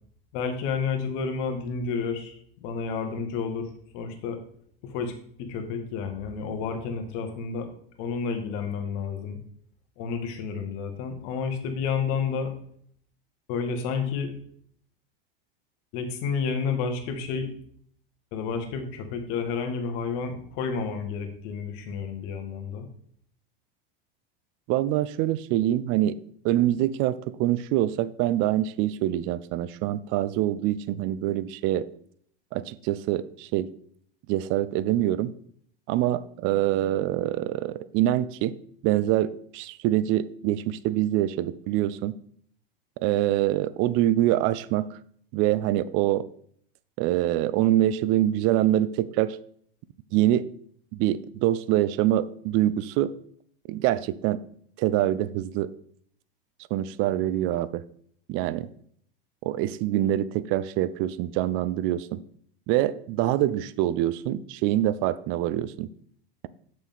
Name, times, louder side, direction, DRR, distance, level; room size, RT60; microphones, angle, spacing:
voice 1, 0.3-2.3 2.6-4.4 4.8-5.1 5.4-7.7 8.0-9.4 10.0-12.5 13.5-14.3 15.9-17.5 18.3-22.9, left 5 dB, 55° left, 1.5 m, -30 dB
voice 2, 24.7-26.2 26.4-31.9 32.5-33.7 34.3-35.3 35.9-38.6 38.8-42.1 43.0-44.9 45.3-46.3 47.0-49.4 50.1-50.5 50.9-53.1 53.7-54.4 54.8-55.7 56.7-57.8 58.3-58.7 59.4-62.2 62.7-65.9, right 13 dB, 45° right, 0.5 m, -25 dB
7.2 x 6.1 x 3.5 m
hypercardioid pair, 105°, 29 cm